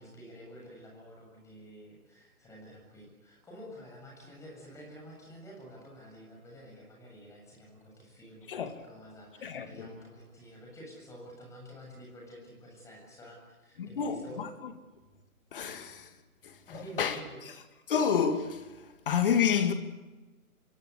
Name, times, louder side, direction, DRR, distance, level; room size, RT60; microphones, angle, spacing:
voice 1, 0.0-14.4 16.7-17.4, equal, 5° left, 7.5 m, -49 dB
voice 2, 8.5-8.8 9.4-9.9 13.8-14.7 15.5-16.2 16.4-17.6 17.9-19.7, left 7 dB, 35° left, 2.7 m, -30 dB
26.0 x 23.0 x 8.4 m
figure-of-eight pair, 150°, 44 cm